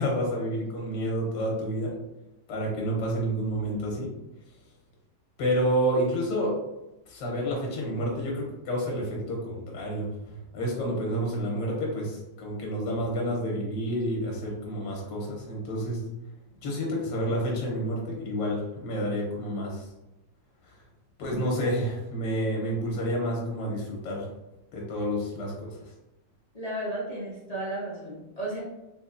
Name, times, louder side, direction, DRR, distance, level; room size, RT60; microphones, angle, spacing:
voice 1, 0.0-1.9 2.5-4.1 5.4-6.6 7.1-16.0 16.6-19.8 21.2-24.2 24.7-25.7, equal, 85° left, -1 dB, 1.5 m, -29 dB
voice 2, 26.5-28.6, right 1 dB, 35° left, -7 dB, 0.6 m, -34 dB
3.6 x 2.9 x 2.4 m, 0.96 s
omnidirectional pair, 1.9 m